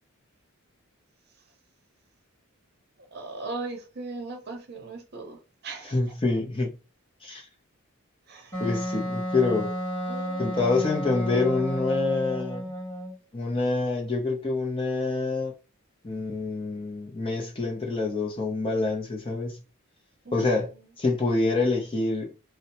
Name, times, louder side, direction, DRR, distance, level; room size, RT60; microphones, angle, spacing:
voice 1, 3.1-6.0 8.3-8.6 10.1-11.5 20.2-20.8, right 3 dB, 50° right, 0.7 m, -39 dB
voice 2, 5.9-6.7 7.2-7.5 8.6-9.7 10.4-12.6 13.3-15.5 16.0-19.6 20.3-20.7 21.0-22.3, left 3 dB, 25° left, 0.5 m, -26 dB
Wind instrument woodwind instrument, 8.5-13.2, equal, 10° left, 1.1 m, -32 dB
2.7 x 2.0 x 2.8 m
head